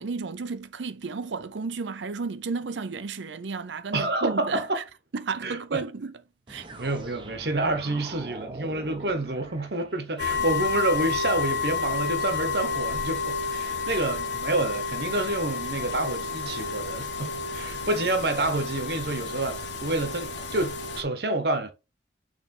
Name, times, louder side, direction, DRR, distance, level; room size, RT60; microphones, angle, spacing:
voice 1, 0.0-4.8 5.1-6.2 6.5-6.7 10.4-10.5 13.9-14.0, right 4 dB, 85° right, 0.6 m, -33 dB
voice 2, 3.9-4.8 5.4-5.8 6.7-21.7, right 2 dB, 60° right, 1.2 m, -28 dB
sound 1, 6.5-10.4, right 2 dB, 25° right, 1.0 m, -43 dB
sound 2, 10.2-21.0, left 4 dB, 80° left, 1.3 m, -30 dB
6.7 x 3.4 x 4.3 m
head